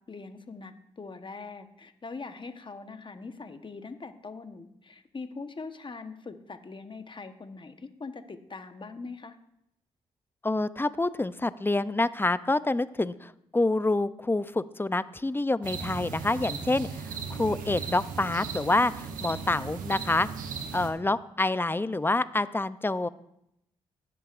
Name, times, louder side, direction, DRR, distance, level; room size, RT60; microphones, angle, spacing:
voice 1, 0.1-9.4, left 4 dB, 35° left, 9 dB, 1.1 m, -42 dB
voice 2, 10.4-20.3 20.7-23.1, left 2 dB, 15° left, 15 dB, 0.6 m, -27 dB
sound 1, 15.6-20.9, right 6 dB, 75° right, 1.0 m, -37 dB
17.0 x 7.7 x 2.6 m, 0.77 s
supercardioid pair, 45°, 14 cm